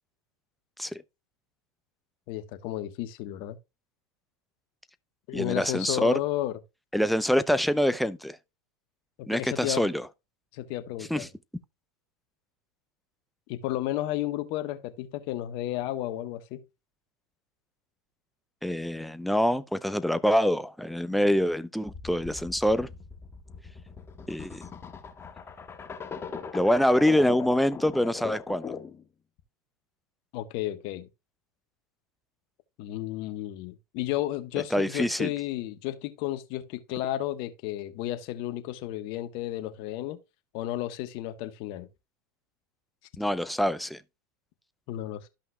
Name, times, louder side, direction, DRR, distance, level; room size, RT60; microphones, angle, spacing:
voice 1, 2.3-3.6 5.3-6.6 9.2-9.9 10.5-11.3 13.5-16.6 30.3-31.1 32.8-40.2 40.5-41.9 44.9-45.3, left 14 dB, 55° left, 1.2 m, -33 dB
voice 2, 5.3-6.2 6.9-8.4 9.3-10.1 11.1-11.3 18.6-22.9 24.3-24.6 26.5-28.7 34.7-35.3 43.2-44.0, equal, ahead, 0.6 m, -25 dB
sound 1, 21.9-29.0, left 6 dB, 20° left, 1.4 m, -40 dB
13.0 x 5.7 x 2.3 m
hypercardioid pair, 105°, 11 cm